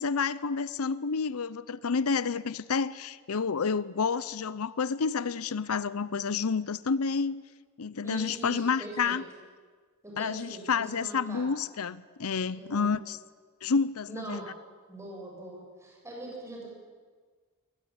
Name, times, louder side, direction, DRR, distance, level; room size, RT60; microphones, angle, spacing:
voice 1, 0.0-7.4 7.8-9.2 10.2-13.2 13.6-14.4, left 5 dB, 80° left, 18 dB, 0.7 m, -29 dB
voice 2, 8.0-9.2 10.0-11.4 12.6-12.9 14.1-14.5 14.9-16.7, right 2 dB, 15° right, -2 dB, 7.5 m, -42 dB
23.5 x 19.5 x 8.9 m, 1.5 s
head